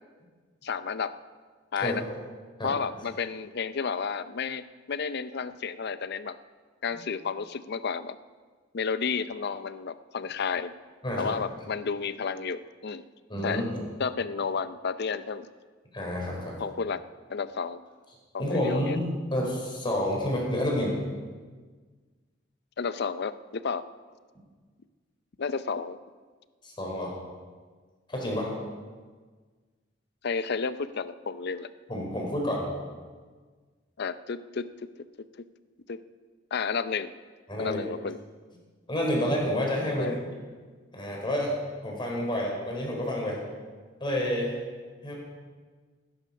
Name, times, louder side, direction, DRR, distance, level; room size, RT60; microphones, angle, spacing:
voice 1, 0.6-1.1 1.7-2.0 2.6-6.4 6.8-8.2 8.7-10.7 11.2-13.0 13.4-13.6 14.0-15.5 16.6-17.0 17.3-17.8 18.3-19.0 22.8-23.8 25.4-26.0 30.2-31.7 34.0-34.7 35.9-36.0 36.5-37.1 37.6-38.2 40.0-40.1, left 5 dB, 60° left, 13 dB, 0.6 m, -31 dB
voice 2, 1.8-2.1 2.6-2.7 11.0-11.3 13.3-13.8 15.9-16.5 18.4-21.0 26.6-27.1 28.1-28.5 31.9-32.7 37.5-37.8 38.9-40.1 40.9-41.5 41.8-43.4 44.0-44.5 45.0-45.1, left 1 dB, 25° left, -2 dB, 4.2 m, -29 dB
18.0 x 10.5 x 5.5 m, 1.5 s
head